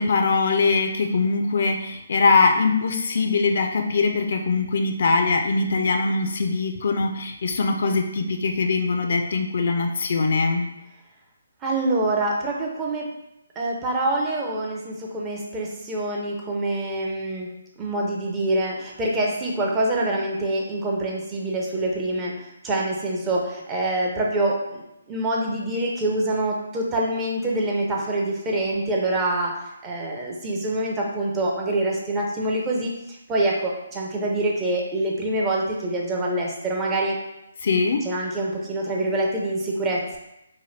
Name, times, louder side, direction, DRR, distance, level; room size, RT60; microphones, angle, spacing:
voice 1, 0.0-10.7 37.6-38.1, left 4 dB, 55° left, 4 dB, 0.3 m, -22 dB
voice 2, 11.6-13.1 13.6-17.5 17.8-22.3 22.6-29.5 29.8-32.9 33.3-37.2 38.1-40.2, right 1 dB, 15° right, -2 dB, 0.5 m, -25 dB
2.9 x 2.2 x 3.2 m, 0.86 s
figure-of-eight pair, 145°, 0 cm